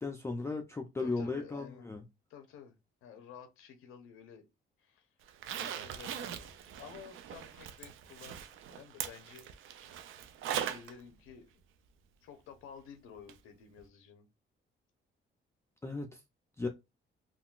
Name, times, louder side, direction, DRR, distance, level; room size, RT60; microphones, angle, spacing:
voice 1, 0.0-2.0 15.8-16.2 16.6-16.7, left 3 dB, 15° left, 0.4 m, -36 dB
voice 2, 1.0-1.9 2.3-2.8 3.0-4.5 4.8-5.1 5.5-10.1 10.5-11.5 12.2-14.3, left 7 dB, 90° left, 0.7 m, -52 dB
Zipper (clothing), 5.3-10.9 11.3-11.4 13.3-13.4 13.8-13.9, right 9 dB, 75° right, 0.5 m, -41 dB
3.6 x 2.3 x 2.4 m
cardioid pair, 100°, 21 cm